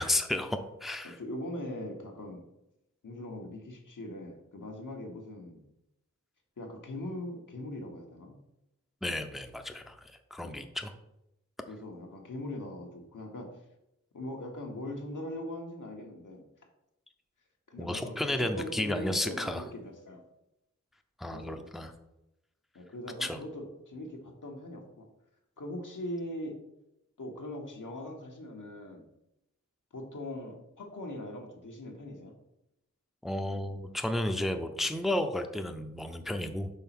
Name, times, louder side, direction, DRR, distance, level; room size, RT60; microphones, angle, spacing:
voice 1, 0.0-1.2 9.0-10.9 17.8-19.6 21.2-21.9 23.2-23.4 33.2-36.7, left 1 dB, ahead, 6 dB, 0.5 m, -32 dB
voice 2, 1.0-2.4 3.0-5.6 6.6-8.4 10.4-10.6 11.7-13.5 14.1-16.4 17.7-20.2 21.3-21.7 22.7-25.1 25.6-26.6 27.2-29.1 29.9-32.3, left 1 dB, 85° left, 1 dB, 1.3 m, -41 dB
5.6 x 4.0 x 6.0 m, 0.88 s
wide cardioid pair, 80°, 31 cm